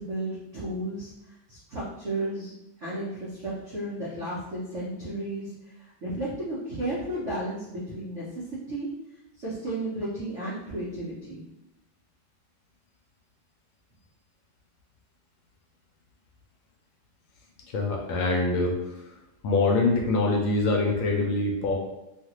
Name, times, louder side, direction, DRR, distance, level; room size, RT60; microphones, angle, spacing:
voice 1, 0.0-2.5 2.8-5.5 5.8-8.4 8.7-8.9 9.4-11.4, right 1 dB, 70° right, -8 dB, 0.7 m, -33 dB
voice 2, 17.7-18.8 19.4-21.7, left 3 dB, 75° left, 0 dB, 1.2 m, -24 dB
3.2 x 2.4 x 2.8 m, 0.91 s
omnidirectional pair, 2.2 m